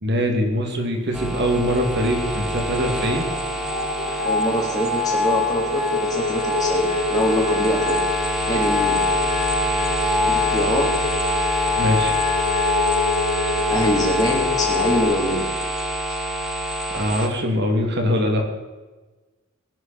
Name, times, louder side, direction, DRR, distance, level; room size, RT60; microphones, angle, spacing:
voice 1, 0.0-3.2 11.8-12.2 16.9-18.4, equal, 60° right, 3 dB, 2.9 m, -22 dB
sound 1, 1.1-17.3, right 1 dB, ahead, 1.9 m, -26 dB
sound 2, 2.5-15.0, left 4 dB, 50° left, 3.1 m, -25 dB
voice 2, 4.2-8.0 8.5-9.0 10.2-10.9 13.7-15.5, equal, 20° left, -2 dB, 4.0 m, -24 dB
19.5 x 11.0 x 4.5 m, 1.2 s
head